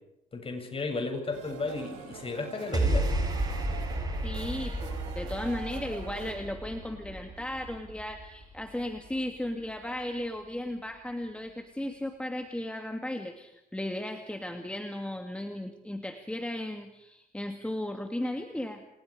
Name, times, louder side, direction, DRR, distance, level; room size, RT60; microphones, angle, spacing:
voice 1, 0.3-3.2, left 3 dB, 30° left, 4 dB, 7.6 m, -34 dB
sound 1, 1.3-6.3, right 7 dB, 65° right, 5.6 m, -45 dB
sound 2, 2.7-9.2, right 1 dB, 20° right, 7.5 m, -32 dB
voice 2, 4.2-18.8, left 1 dB, 5° left, 5 dB, 2.6 m, -35 dB
29.5 x 28.0 x 5.1 m, 0.83 s
hypercardioid pair, 60°, 20 cm